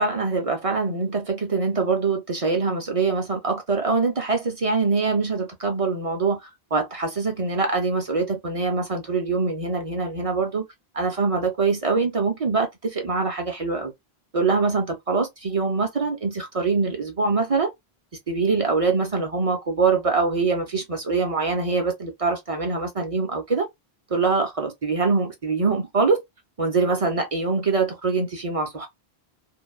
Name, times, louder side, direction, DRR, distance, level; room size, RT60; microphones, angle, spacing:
voice 1, 0.0-10.7 10.9-13.9 14.3-17.7 18.3-23.7 24.1-26.2 26.6-28.9, right 4 dB, 45° right, 0.5 m, -24 dB
2.6 x 2.2 x 2.3 m
omnidirectional pair, 1.1 m